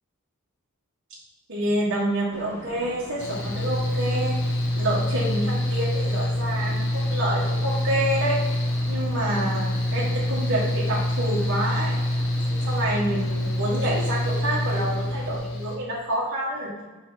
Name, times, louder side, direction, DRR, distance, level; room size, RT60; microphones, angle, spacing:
voice 1, 1.5-4.4 4.7-8.4 8.9-12.0 12.5-16.7, right 1 dB, 55° right, -6 dB, 1.5 m, -28 dB
sound 1, 2.3-15.4, equal, 10° left, 0.9 m, -43 dB
Mechanical fan, 3.2-15.7, left 1 dB, 60° left, 1.2 m, -26 dB
6.3 x 3.4 x 5.7 m, 1.2 s
head